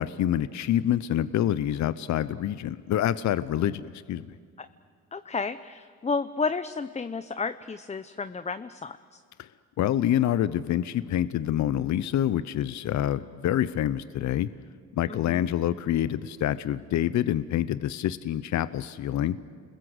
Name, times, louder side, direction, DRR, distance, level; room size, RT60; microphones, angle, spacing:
voice 1, 0.0-4.3 9.4-9.5 9.8-14.5 14.9-19.4, left 11 dB, 70° left, 15 dB, 0.7 m, -27 dB
voice 2, 5.1-9.2 15.1-15.5, left 4 dB, 20° left, 12 dB, 0.7 m, -32 dB
29.5 x 21.5 x 7.9 m, 2.1 s
cardioid pair, 90°, 30 cm